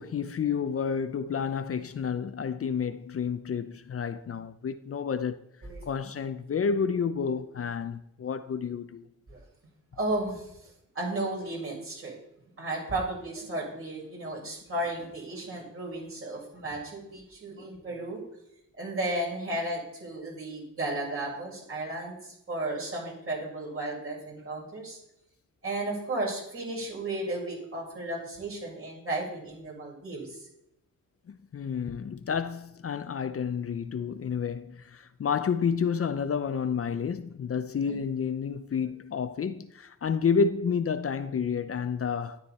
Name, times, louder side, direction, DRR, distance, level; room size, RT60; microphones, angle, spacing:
voice 1, 0.0-5.5 5.9-9.1 31.3-42.4, left 6 dB, 45° left, 0.7 m, -30 dB
voice 2, 9.9-10.5 10.9-12.2 12.6-18.2 18.8-25.0 25.6-30.4 37.8-38.0, right 2 dB, 45° right, 6.4 m, -34 dB
13.0 x 12.0 x 4.3 m
wide cardioid pair, 130°, 32 cm